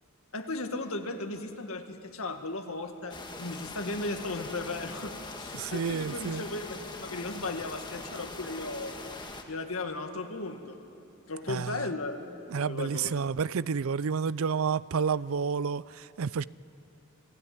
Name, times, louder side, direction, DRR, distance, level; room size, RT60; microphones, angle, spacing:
voice 1, 0.3-9.1 9.5-10.8 11.3-13.2, left 2 dB, 80° left, 1.9 m, -36 dB
sound 1, 3.1-9.4, left 2 dB, 20° left, 1.7 m, -42 dB
voice 2, 5.5-6.4 11.5-11.9 12.5-16.4, right 6 dB, 75° right, 0.5 m, -30 dB
28.5 x 16.5 x 9.6 m
head